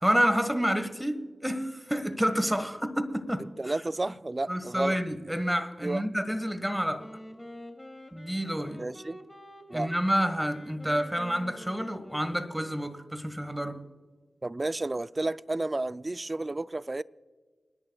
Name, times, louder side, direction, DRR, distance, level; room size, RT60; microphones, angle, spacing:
voice 1, 0.0-3.5 4.5-7.1 8.1-8.8 9.7-13.8, equal, 5° right, 1.5 m, -29 dB
voice 2, 3.6-5.0 5.8-6.1 8.8-9.2 9.7-9.9 14.4-17.0, right 2 dB, 40° right, 0.4 m, -32 dB
Wind instrument woodwind instrument, 6.6-13.0, left 1 dB, 20° left, 2.5 m, -48 dB
29.5 x 10.5 x 2.3 m
cardioid pair, 40°, 0 cm